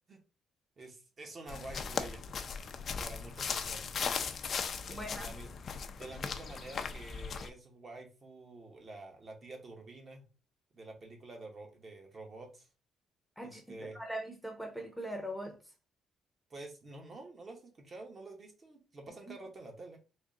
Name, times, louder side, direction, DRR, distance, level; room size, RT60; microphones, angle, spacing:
voice 1, 0.8-2.2 3.0-3.9 4.9-5.6 6.0-10.2 10.7-12.7 13.4-14.0 16.5-20.0, right 2 dB, 35° right, 0.9 m, -48 dB
sound 1, 1.5-7.5, left 6 dB, 45° left, 0.4 m, -38 dB
voice 2, 4.9-5.3 13.4-15.6, equal, ahead, 0.7 m, -41 dB
3.6 x 2.2 x 3.7 m
cardioid pair, 130°, 0 cm